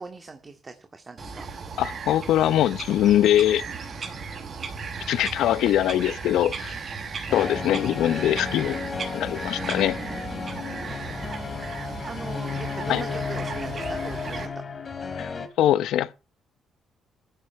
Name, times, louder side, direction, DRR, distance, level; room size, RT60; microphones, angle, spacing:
voice 1, 0.0-1.5 4.1-4.2 9.6-11.0 11.6-14.5, right 3 dB, 30° right, 2.1 m, -41 dB
Bird vocalization bird call bird song, 1.2-14.5, right 5 dB, 45° right, 5.7 m, -36 dB
voice 2, 1.8-3.6 5.1-6.7 7.3-8.8 9.1-10.0 12.9-13.0 15.1-15.3 15.6-16.1, left 12 dB, 80° left, 0.7 m, -22 dB
sound 1, 7.3-15.5, left 5 dB, 40° left, 2.9 m, -33 dB
14.5 x 9.2 x 5.8 m
cardioid pair, 90°, 0 cm